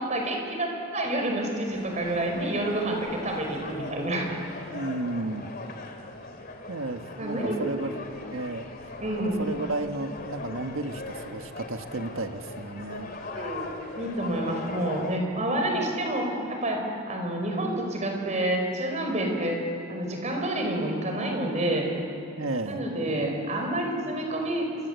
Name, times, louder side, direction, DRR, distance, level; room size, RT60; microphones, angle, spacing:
voice 1, 0.0-4.3 7.2-7.9 9.0-9.4 13.3-13.7 14.0-19.6 19.9-21.9 22.6-24.7, right 1 dB, 35° right, 2 dB, 5.2 m, -28 dB
sound 1, 1.7-15.2, left 2 dB, 50° left, 2.8 m, -40 dB
voice 2, 4.7-5.5 6.7-7.9 8.3-8.7 9.4-13.1 22.4-22.8, right 2 dB, 80° right, 6 dB, 1.6 m, -33 dB
26.5 x 24.5 x 8.2 m, 2.9 s
head